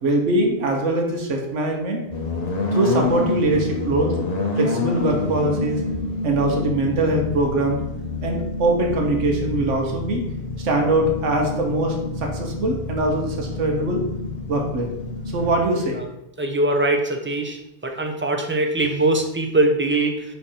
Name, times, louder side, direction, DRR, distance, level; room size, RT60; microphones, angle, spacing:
voice 1, 0.0-2.0 2.7-4.2 4.6-5.8 6.2-7.8 8.2-10.2 10.6-14.0 14.5-14.9 15.3-16.0, right 1 dB, 85° right, 1 dB, 1.4 m, -22 dB
sound 1, 2.1-15.6, left 3 dB, 35° left, 1.0 m, -28 dB
voice 2, 16.4-17.6 17.8-20.2, right 2 dB, 10° right, 3 dB, 0.6 m, -21 dB
9.5 x 3.4 x 4.4 m, 0.89 s
omnidirectional pair, 1.2 m